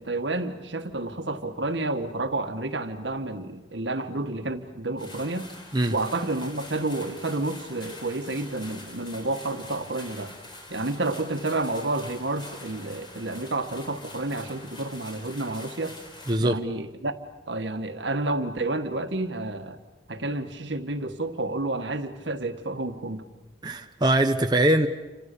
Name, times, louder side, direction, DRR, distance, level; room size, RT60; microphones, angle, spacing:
voice 1, 0.0-5.5 5.9-10.4 10.7-16.0 16.4-17.2 17.5-19.8 20.1-23.2, right 2 dB, 75° right, 1.8 m, -30 dB
sound 1, 5.0-16.4, left 2 dB, 25° left, 4.9 m, -45 dB
voice 2, 16.3-16.6 23.6-24.9, right 1 dB, 25° right, 1.1 m, -22 dB
30.0 x 26.0 x 6.9 m
head